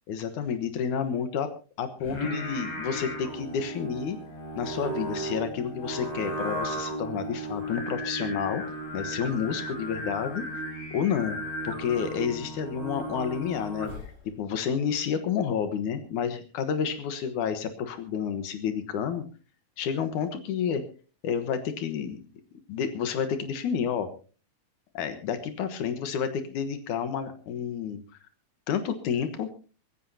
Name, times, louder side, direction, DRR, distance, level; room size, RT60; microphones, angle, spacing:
voice 1, 0.1-1.5 1.8-4.2 4.6-8.6 8.9-10.4 10.9-11.4 11.6-13.9 14.2-19.2 19.8-20.8 21.2-22.3 22.7-24.1 24.9-28.0 28.7-29.5, left 7 dB, 85° left, 9 dB, 2.7 m, -30 dB
Singing, 2.0-14.2, right 1 dB, 65° left, 6.5 m, -35 dB
25.0 x 14.0 x 2.8 m, 0.36 s
omnidirectional pair, 3.4 m